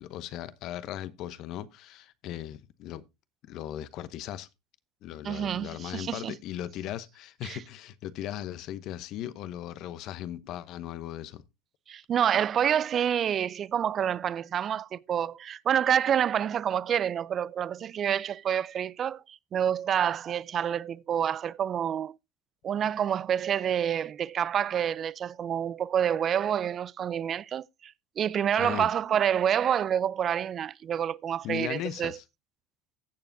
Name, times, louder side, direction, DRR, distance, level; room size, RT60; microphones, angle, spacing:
voice 1, 0.0-3.0 3.4-4.5 5.0-11.4 28.6-28.9 31.4-32.2, left 12 dB, 55° left, 0.8 m, -38 dB
voice 2, 5.2-6.3 7.4-7.6 11.9-22.1 22.6-32.2, right 9 dB, 40° right, 0.4 m, -28 dB
16.0 x 6.9 x 2.6 m
hypercardioid pair, 80°, 0 cm